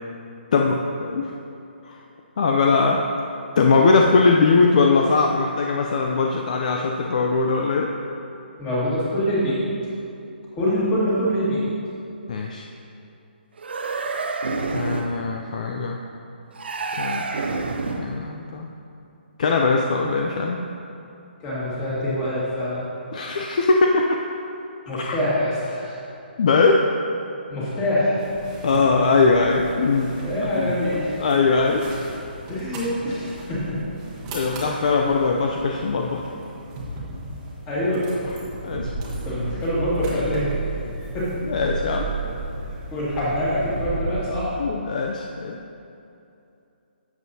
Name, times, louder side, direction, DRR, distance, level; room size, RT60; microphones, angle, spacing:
voice 1, 0.5-1.3 1.8-2.0 2.4-3.0 3.6-7.9 12.3-12.6 14.7-16.0 16.9-17.3 18.0-18.7 19.4-20.6 23.1-24.2 24.9-25.2 26.4-26.9 28.6-30.1 30.6-30.7 31.2-31.9 34.3-36.2 38.6-38.9 41.5-42.1 44.6-45.6, left 4 dB, 45° left, 1 dB, 0.5 m, -20 dB
voice 2, 8.6-9.6 10.5-11.7 21.4-22.8 24.9-26.0 27.5-28.2 30.2-31.2 32.5-33.8 34.6-34.7 37.7-38.0 39.2-40.5 40.9-41.3 42.9-44.5, equal, 15° left, -8 dB, 2.0 m, -25 dB
sound 1, 13.6-15.2 16.6-18.2, right 3 dB, 70° right, 0.7 m, -28 dB
sound 2, 28.2-44.3, right 2 dB, 15° right, 1.1 m, -34 dB
11.5 x 7.5 x 2.8 m, 2.7 s
hypercardioid pair, 170°, 6 cm